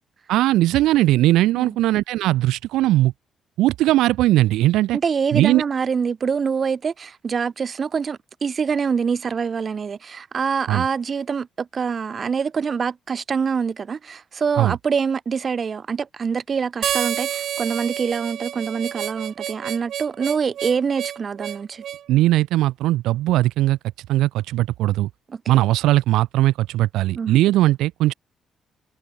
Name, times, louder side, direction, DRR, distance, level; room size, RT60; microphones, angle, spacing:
voice 1, 0.3-3.1 3.6-5.0 5.3-5.6 10.7-10.8 14.6-14.8 22.1-23.8 24.1-25.1 25.5-28.1, right 15 dB, 90° right, 1.2 m, -19 dB
voice 2, 4.9-21.8 25.3-25.6 27.1-27.4, right 6 dB, 45° right, 4.7 m, -25 dB
Harmonica, 16.8-22.0, right 10 dB, 70° right, 3.0 m, -29 dB
open air
cardioid pair, 90°, 0 cm